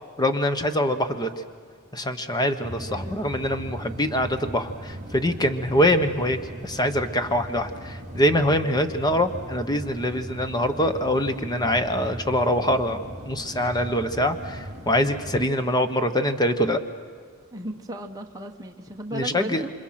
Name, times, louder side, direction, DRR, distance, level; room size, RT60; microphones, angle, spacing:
voice 1, 0.2-1.3 1.9-16.8 19.1-19.6, left 1 dB, 20° left, 9 dB, 1.1 m, -24 dB
sound 1, 2.6-15.4, right 1 dB, 35° right, 1.4 m, -38 dB
voice 2, 2.9-3.2 17.5-19.7, right 1 dB, 15° right, 1 dB, 1.1 m, -35 dB
28.5 x 26.0 x 5.9 m, 2.1 s
head